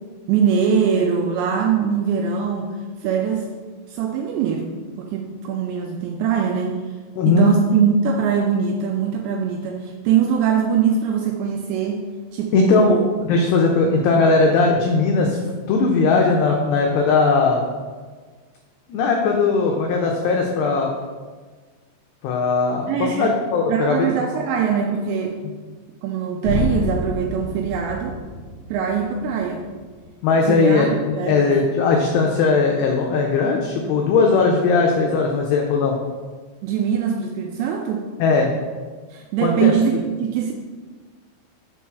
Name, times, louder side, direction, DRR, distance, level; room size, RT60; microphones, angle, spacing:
voice 1, 0.3-3.5 3.9-6.8 7.3-12.1 12.3-13.0 22.9-23.4 23.7-25.4 26.0-28.2 28.7-29.7 30.5-31.5 36.6-38.1 39.1-40.5, right 7 dB, 85° right, 2 dB, 2.5 m, -22 dB
voice 2, 7.2-7.5 12.5-17.7 18.9-20.9 22.2-24.1 30.2-36.0 38.2-38.5 39.4-39.7, left 4 dB, 85° left, 0 dB, 2.4 m, -18 dB
sound 1, 26.4-30.4, left 1 dB, 55° left, 2.5 m, -29 dB
6.2 x 4.5 x 6.0 m, 1.4 s
omnidirectional pair, 5.6 m